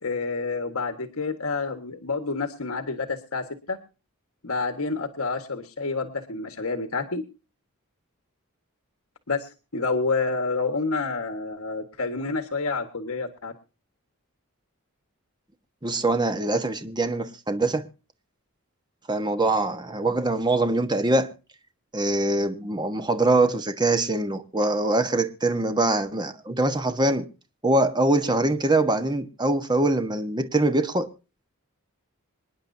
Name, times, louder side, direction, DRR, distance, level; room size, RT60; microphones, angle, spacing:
voice 1, 0.0-3.8 4.4-7.2 9.3-13.5, left 3 dB, 75° left, 1.5 m, -28 dB
voice 2, 15.8-17.9 19.1-21.3 21.9-27.3 27.6-31.1, right 2 dB, 20° right, 1.3 m, -23 dB
26.5 x 10.5 x 2.7 m
head